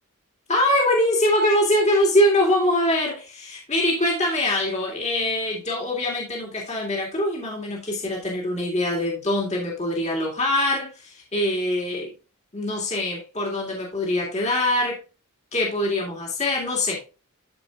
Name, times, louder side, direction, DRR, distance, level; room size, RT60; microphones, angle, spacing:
voice 1, 0.5-12.1 12.5-15.0 15.5-17.0, left 1 dB, 30° left, -2 dB, 2.2 m, -23 dB
13.5 x 4.8 x 2.4 m, 0.30 s
head